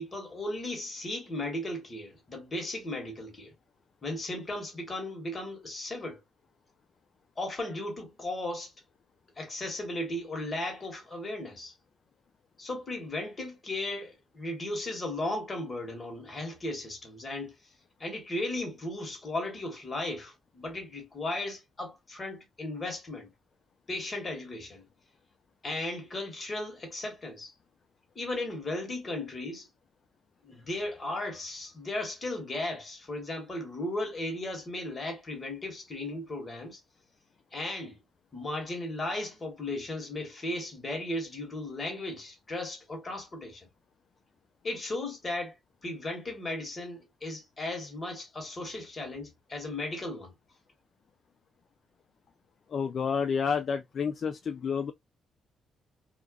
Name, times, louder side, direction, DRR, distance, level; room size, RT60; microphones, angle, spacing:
voice 1, 0.0-3.5 4.0-6.2 7.4-8.7 9.4-11.7 12.6-17.5 18.0-23.3 23.9-24.9 25.6-27.5 28.1-29.7 30.4-36.8 37.5-38.0 38.3-43.7 44.6-45.5 45.8-50.3, left 2 dB, 30° left, 1.3 m, -36 dB
voice 2, 52.7-54.9, left 6 dB, 55° left, 0.3 m, -29 dB
2.4 x 2.2 x 2.3 m
cardioid pair, 90°, 0 cm